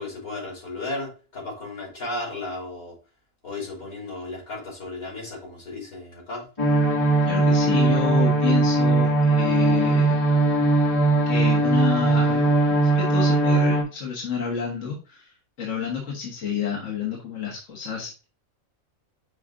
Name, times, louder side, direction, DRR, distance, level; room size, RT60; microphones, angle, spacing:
voice 1, 0.0-2.9 3.4-6.5, left 2 dB, 85° left, -3 dB, 3.8 m, -34 dB
sound 1, 6.6-13.8, right 2 dB, 25° left, 1.8 m, -20 dB
voice 2, 7.3-10.2 11.3-15.3 15.6-18.2, left 7 dB, 60° left, -3 dB, 1.8 m, -29 dB
6.3 x 3.3 x 4.8 m, 0.34 s
omnidirectional pair, 1.5 m